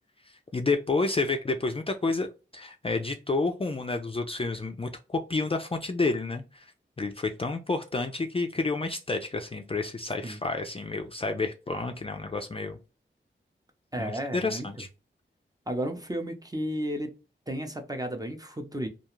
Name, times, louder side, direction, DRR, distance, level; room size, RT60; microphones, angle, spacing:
voice 1, 0.3-2.3 2.5-6.7 7.0-12.8 14.0-14.9, left 3 dB, 30° left, 0.4 m, -30 dB
voice 2, 13.9-14.7 15.7-17.1 17.5-18.9, right 1 dB, 20° right, 0.6 m, -33 dB
2.4 x 2.3 x 3.0 m
wide cardioid pair, 65°, 20 cm